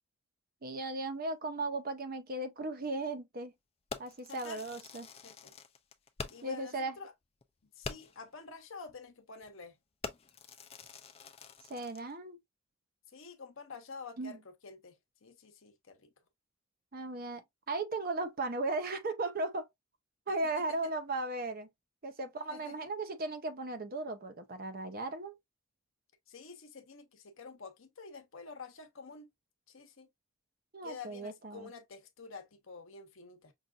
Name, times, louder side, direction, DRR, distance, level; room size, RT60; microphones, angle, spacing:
voice 1, 0.6-3.5 4.0-5.1 6.4-6.9 11.7-12.4 14.2-14.4 16.9-19.7 20.3-21.7 22.0-25.4 30.7-31.7, right 2 dB, 40° right, 0.6 m, -36 dB
Fireworks, 3.9-6.6 7.0-7.1 7.4-7.5 7.8-8.3 8.9-9.1 9.4-9.7 10.0-12.1, left 5 dB, 25° left, 0.4 m, -45 dB
voice 2, 4.3-4.6 5.2-5.5 6.3-7.1 7.6-9.8 13.1-16.1 20.4-20.9 22.5-22.8 26.3-29.3 29.7-30.1 30.8-33.5, left 4 dB, 60° left, 0.9 m, -49 dB
5.5 x 2.5 x 2.4 m
head